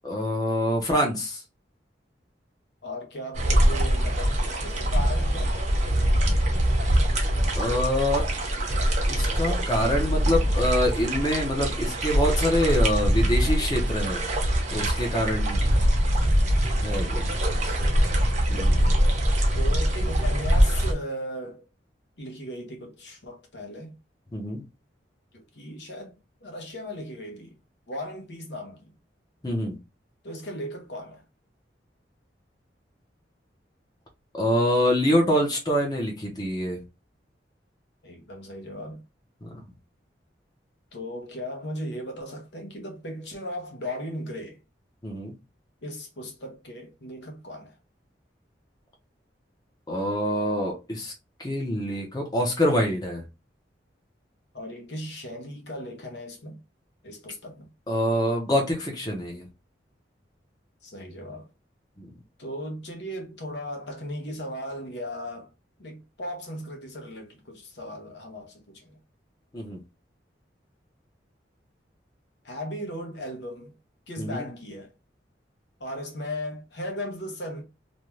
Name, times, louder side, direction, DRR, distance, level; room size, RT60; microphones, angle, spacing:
voice 1, 0.0-1.4 7.5-8.3 9.1-14.2 14.7-15.8 16.8-17.4 18.5-18.8 24.3-24.6 29.4-29.8 34.3-36.8 39.4-39.6 45.0-45.3 49.9-51.1 51.4-53.2 57.9-59.5 62.0-62.1 69.5-69.8 74.2-74.5, equal, 20° left, 0.7 m, -25 dB
voice 2, 2.8-5.6 17.5-18.3 19.5-21.7 22.2-24.0 25.3-27.5 27.9-28.9 30.2-31.2 38.0-39.0 40.9-44.6 45.8-47.8 54.5-56.6 57.0-57.7 60.8-61.5 62.4-65.5 65.8-69.0 72.4-73.7 74.1-74.9 75.8-77.6, equal, 70° left, 0.8 m, -37 dB
sound 1, 3.3-20.9, equal, 40° right, 0.7 m, -23 dB
2.6 x 2.2 x 3.0 m
head